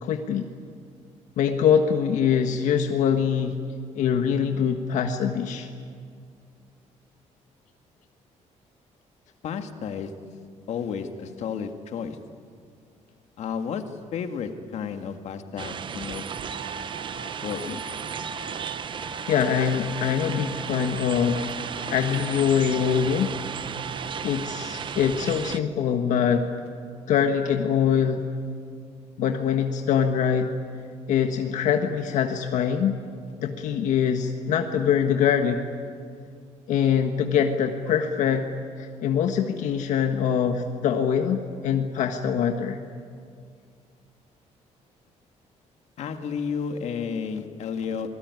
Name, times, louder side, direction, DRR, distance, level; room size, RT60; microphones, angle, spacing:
voice 1, 0.0-0.4 1.4-3.6 3.9-5.7 19.3-21.5 21.9-23.3 24.2-26.5 27.1-28.2 29.2-30.5 31.1-33.0 33.4-35.6 36.7-42.8, left 7 dB, 85° left, 4 dB, 1.5 m, -23 dB
voice 2, 9.4-10.1 10.7-12.2 13.4-13.8 14.1-16.3 17.4-17.8 46.0-48.1, left 6 dB, 65° left, 6 dB, 1.9 m, -32 dB
sound 1, 15.6-25.6, right 7 dB, 40° right, 0.8 m, -34 dB
Trumpet, 16.3-24.8, right 3 dB, 75° right, 5.0 m, -42 dB
27.0 x 20.0 x 9.6 m, 2.2 s
cardioid pair, 145°, 12 cm